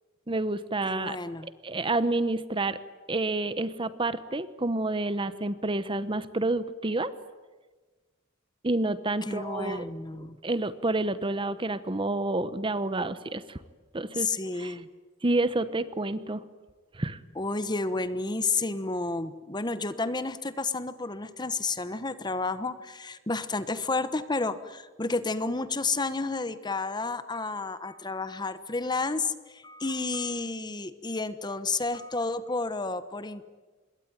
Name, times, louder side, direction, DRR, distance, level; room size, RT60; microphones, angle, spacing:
voice 1, 0.3-1.2 1.4-2.8 3.1-7.1 8.6-9.9 10.4-13.6 13.9-14.3 14.6-14.8 15.2-16.4 16.9-17.2, right 2 dB, 25° right, 14 dB, 0.9 m, -29 dB
voice 2, 0.8-1.5 9.2-10.4 14.2-14.9 17.3-33.4, left 3 dB, 20° left, 13 dB, 1.1 m, -31 dB
26.5 x 22.0 x 9.6 m, 1.3 s
head